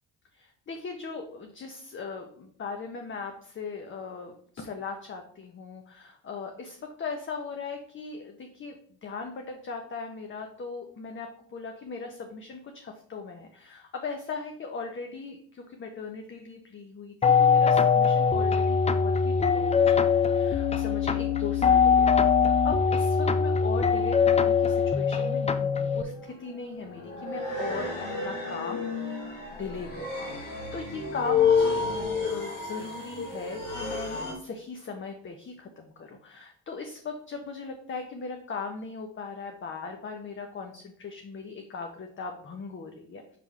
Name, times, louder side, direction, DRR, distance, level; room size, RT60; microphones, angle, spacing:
voice 1, 0.3-27.9 28.2-29.3 29.6-31.9 32.1-43.4, left 4 dB, 40° left, 4 dB, 0.8 m, -39 dB
sound 1, 17.2-26.0, left 6 dB, 20° left, 0.4 m, -22 dB
sound 2, 23.8-23.9 25.1-34.3, left 5 dB, 85° left, 1.8 m, -30 dB
5.9 x 3.4 x 4.8 m, 0.62 s
supercardioid pair, 70°, 31 cm